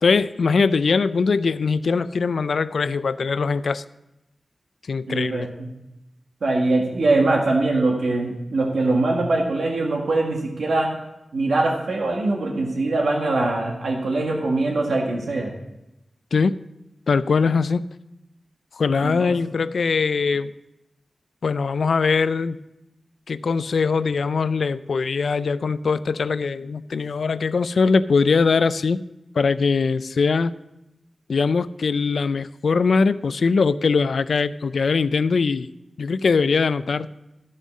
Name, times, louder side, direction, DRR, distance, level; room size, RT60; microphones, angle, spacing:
voice 1, 0.0-3.8 4.9-5.5 16.3-16.6 17.1-17.8 18.7-20.5 21.4-22.6 23.3-29.0 29.4-30.5 31.3-35.7 36.0-37.1, left 4 dB, 80° left, 15 dB, 0.4 m, -21 dB
voice 2, 5.1-5.7 6.4-10.9 11.3-15.5 19.0-19.3, right 2 dB, 85° right, 0 dB, 1.6 m, -22 dB
13.0 x 5.5 x 6.1 m, 0.91 s
cardioid pair, 55°, 0 cm